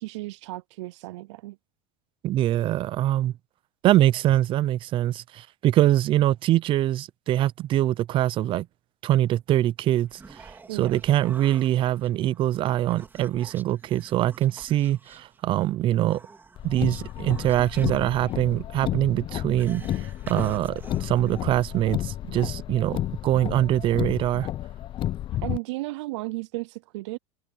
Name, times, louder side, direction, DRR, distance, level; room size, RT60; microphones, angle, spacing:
voice 1, 0.0-1.6 10.7-11.0 25.3-27.2, right 21 dB, 90° right, 0.4 m, -34 dB
voice 2, 2.2-3.3 3.8-8.7 9.0-16.2 16.6-19.8 20.3-24.5, right 13 dB, 35° right, 0.6 m, -23 dB
Human voice, 9.9-22.1, right 4 dB, 15° right, 3.4 m, -49 dB
Car, 16.6-25.6, left 13 dB, 35° left, 0.7 m, -32 dB
supercardioid pair, 140°, 15 cm